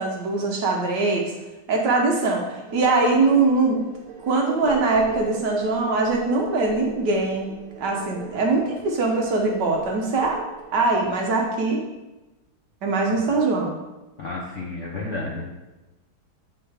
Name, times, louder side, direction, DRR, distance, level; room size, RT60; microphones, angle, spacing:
voice 1, 0.0-1.3 1.7-3.8 4.2-10.4 10.7-11.9 12.8-13.8, right 3 dB, 60° right, 0 dB, 1.3 m, -22 dB
sound 1, 2.7-11.6, right 7 dB, 80° right, 1.7 m, -40 dB
voice 2, 14.2-15.5, left 2 dB, 55° left, -3 dB, 0.8 m, -31 dB
9.0 x 3.9 x 3.4 m, 1.1 s
omnidirectional pair, 2.3 m